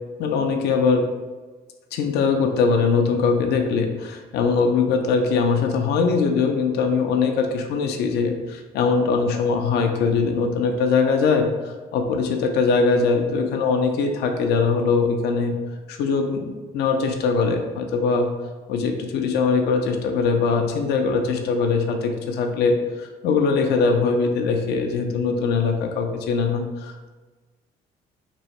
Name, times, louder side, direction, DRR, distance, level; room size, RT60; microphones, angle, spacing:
voice 1, 0.2-1.1 1.9-15.5 15.9-18.3 18.7-27.1, left 4 dB, 75° left, 3 dB, 0.5 m, -21 dB
3.0 x 2.7 x 4.3 m, 1.3 s
cardioid pair, 110°, 17 cm